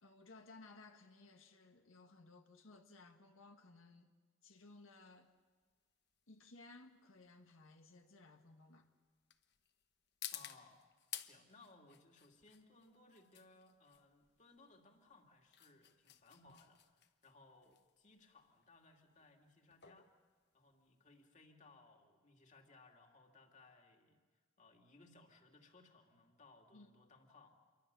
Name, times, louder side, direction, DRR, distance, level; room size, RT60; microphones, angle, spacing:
voice 1, 0.0-4.1 4.4-5.3 6.3-8.9 26.7-26.9, left 3 dB, 90° left, 1.6 m, -60 dB
sound 1, 4.6-21.3, left 11 dB, 55° left, 1.1 m, -55 dB
voice 2, 10.3-10.8 11.2-20.1 20.5-24.2 24.6-27.6, left 3 dB, 35° left, 2.6 m, -64 dB
28.0 x 23.5 x 6.9 m
head